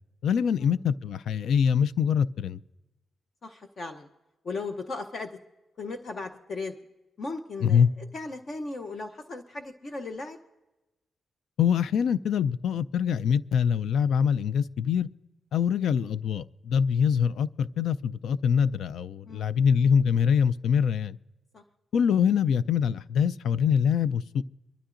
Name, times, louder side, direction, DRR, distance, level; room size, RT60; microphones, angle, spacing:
voice 1, 0.2-2.6 7.6-7.9 11.6-15.1 15.5-21.2 21.9-24.4, left 7 dB, 80° left, 17 dB, 0.3 m, -24 dB
voice 2, 3.4-4.1 4.4-5.4 5.8-6.7 7.2-7.8 8.1-10.4 19.2-19.6 21.5-21.6, left 3 dB, 40° left, 6 dB, 0.7 m, -37 dB
24.0 x 12.5 x 2.5 m, 1.0 s
wide cardioid pair, 150°, 0 cm